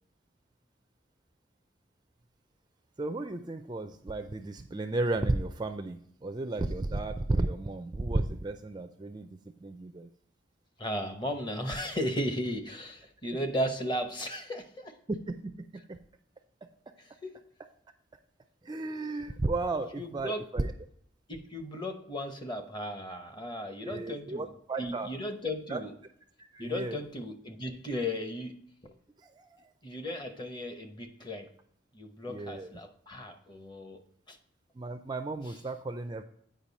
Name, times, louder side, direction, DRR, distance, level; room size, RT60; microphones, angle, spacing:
voice 1, 3.0-10.1 13.3-13.4 15.3-16.0 16.9-17.0 18.6-20.7 23.8-25.1 25.7-25.8 26.4-27.0 29.2-29.7 32.3-32.7 34.7-36.2, right 2 dB, 20° right, 0.4 m, -34 dB
voice 2, 10.8-15.0 17.2-17.3 20.0-20.4 21.3-24.5 24.8-25.9 26.6-28.9 29.8-31.5 31.9-34.0 34.3-34.4, equal, 25° left, 0.9 m, -35 dB
8.9 x 5.1 x 4.0 m
head